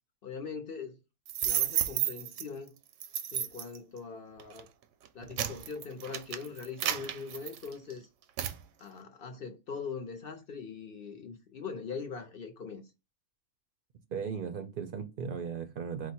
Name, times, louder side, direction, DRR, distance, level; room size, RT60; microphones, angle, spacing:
voice 1, 0.2-1.0 1.4-2.8 3.3-4.7 5.1-8.1 8.8-12.9, left 5 dB, 55° left, 0.7 m, -41 dB
sound 1, 1.3-2.4 3.0-3.8 4.4-4.6 5.0-7.9 8.4-8.6, right 10 dB, 80° right, 1.0 m, -32 dB
voice 2, 14.1-16.1, right 6 dB, 55° right, 0.6 m, -37 dB
4.7 x 2.1 x 4.2 m
omnidirectional pair, 1.4 m